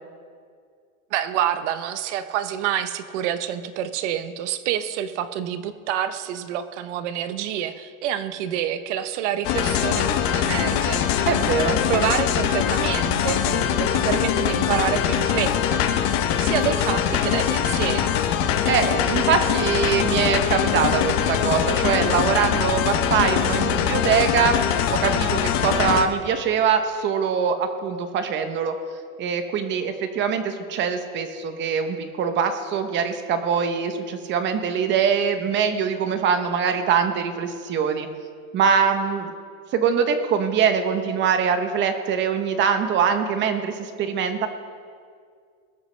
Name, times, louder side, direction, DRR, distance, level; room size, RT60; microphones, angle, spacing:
voice 1, 1.1-11.3 11.9-16.1 16.4-18.1, right 10 dB, 55° right, 11 dB, 0.9 m, -27 dB
sound 1, 9.4-26.1, left 9 dB, 30° left, 0.8 m, -22 dB
voice 2, 11.2-11.9 18.6-24.6 24.9-28.7 29.2-38.1 38.5-39.3 39.7-44.5, right 6 dB, 25° right, 7 dB, 0.8 m, -23 dB
20.5 x 13.5 x 3.3 m, 2.1 s
supercardioid pair, 155°, 43 cm